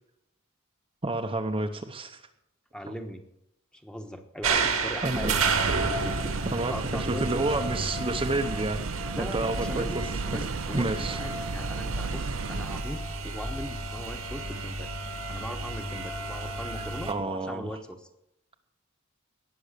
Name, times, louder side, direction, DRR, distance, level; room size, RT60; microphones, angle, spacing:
voice 1, 1.0-2.2 5.0-5.3 6.4-8.8 9.2-9.9 10.7-11.2 16.8-17.8, right 2 dB, 25° right, 4 dB, 0.8 m, -30 dB
voice 2, 2.7-3.2 3.7-5.4 6.0-7.5 9.0-14.9 15.3-18.1, equal, 5° left, 5 dB, 1.2 m, -39 dB
sound 1, 4.4-17.1, right 4 dB, 90° right, 2.0 m, -32 dB
sound 2, 5.2-12.8, right 4 dB, 65° right, 0.6 m, -34 dB
18.0 x 6.9 x 6.7 m, 0.81 s
head